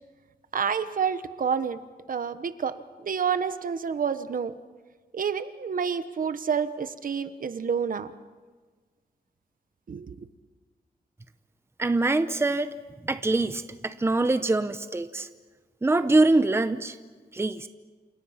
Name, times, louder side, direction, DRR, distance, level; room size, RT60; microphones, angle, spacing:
voice 1, 0.5-1.8 2.1-2.7 3.0-4.5 5.1-8.1 9.9-10.1, right 7 dB, 60° right, 11 dB, 1.2 m, -28 dB
voice 2, 11.8-12.7 13.0-15.3 15.8-17.0 17.3-17.7, right 2 dB, 15° right, 10 dB, 0.9 m, -24 dB
29.0 x 28.0 x 5.9 m, 1.4 s
wide cardioid pair, 150°, 16 cm